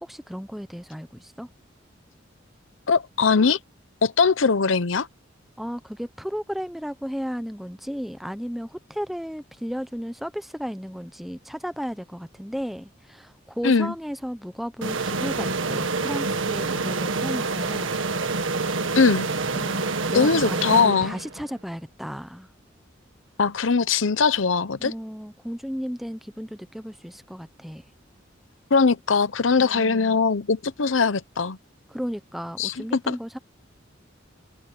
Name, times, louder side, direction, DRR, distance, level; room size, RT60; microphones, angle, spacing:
voice 1, 0.0-1.5 5.6-18.0 19.5-22.5 24.8-27.8 29.6-30.3 31.9-33.4, equal, ahead, 0.9 m, -34 dB
voice 2, 2.9-3.6 4.0-5.1 13.6-13.9 18.9-19.3 20.1-21.2 23.4-24.9 28.7-31.6 32.6-33.2, left 5 dB, 85° left, 0.8 m, -21 dB
sound 1, 14.8-21.5, right 3 dB, 85° right, 1.7 m, -27 dB
head